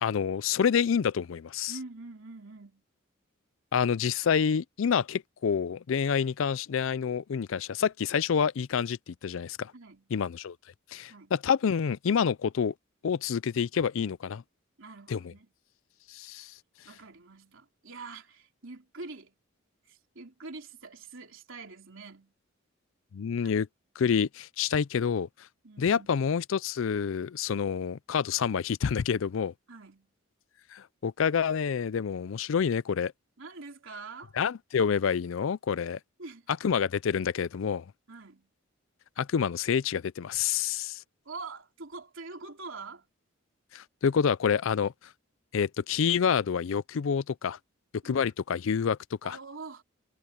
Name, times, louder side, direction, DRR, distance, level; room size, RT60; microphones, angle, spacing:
voice 1, 0.0-1.7 3.7-9.7 10.1-10.6 10.9-12.7 13.0-14.4 15.1-15.2 16.1-16.5 23.1-23.7 24.0-25.3 25.8-29.5 30.7-33.1 34.4-36.0 36.6-37.9 39.2-41.0 43.7-44.9 45.5-47.6 48.0-49.4, left 7 dB, 65° left, 0.4 m, -28 dB
voice 2, 1.7-2.8 9.7-10.1 11.1-11.3 14.8-15.5 16.3-16.4 16.9-19.4 19.9-22.3 23.4-23.5 25.6-26.1 29.7-30.1 33.4-34.3 36.2-36.5 38.1-38.5 41.3-43.1 48.0-48.3 49.2-49.8, right 3 dB, 65° right, 3.5 m, -45 dB
head